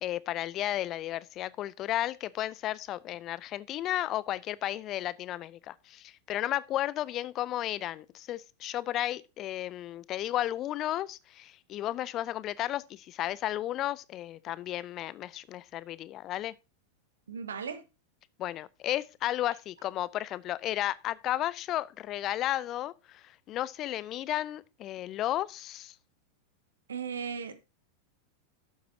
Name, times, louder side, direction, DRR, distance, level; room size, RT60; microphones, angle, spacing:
voice 1, 0.0-16.5 18.4-25.9, left 13 dB, 35° left, 0.5 m, -33 dB
voice 2, 17.3-17.8 26.9-27.5, right 6 dB, 70° right, 1.2 m, -36 dB
12.0 x 7.9 x 2.7 m
figure-of-eight pair, 90°, 0 cm